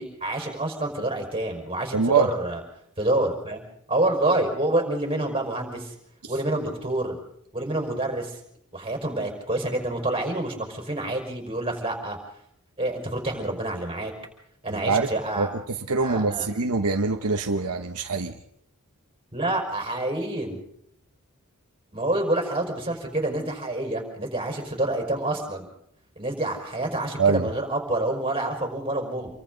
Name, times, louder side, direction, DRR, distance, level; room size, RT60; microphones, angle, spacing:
voice 1, 0.0-2.6 3.0-3.6 3.9-5.9 6.3-7.2 7.5-8.4 8.7-12.2 12.8-14.1 14.6-15.5 16.0-16.5 19.3-20.6 21.9-25.7 26.1-29.3, right 1 dB, 25° right, 1 dB, 5.2 m, -27 dB
voice 2, 1.9-2.3 14.7-15.1 15.4-15.5 15.9-18.3 27.2-27.5, right 4 dB, 75° right, 5 dB, 1.1 m, -23 dB
28.0 x 23.5 x 4.0 m, 0.73 s
head